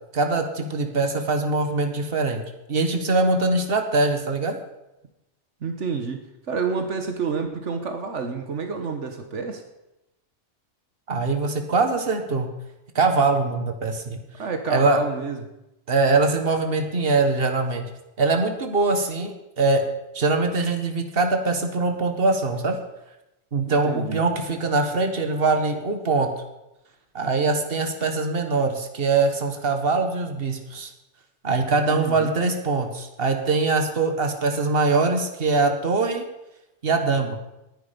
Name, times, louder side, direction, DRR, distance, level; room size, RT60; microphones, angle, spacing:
voice 1, 0.1-2.4 2.7-4.6 11.1-12.5 13.0-14.2 14.7-15.0 15.9-17.9 18.2-19.8 20.1-22.8 23.5-26.3 27.1-30.9 31.4-36.2 36.8-37.4, right 3 dB, 55° right, 6 dB, 1.8 m, -22 dB
voice 2, 5.6-9.6 14.4-15.4 23.6-24.2 31.9-32.3, right 5 dB, 80° right, 6 dB, 1.6 m, -29 dB
19.0 x 10.0 x 5.3 m, 0.95 s
omnidirectional pair, 1.2 m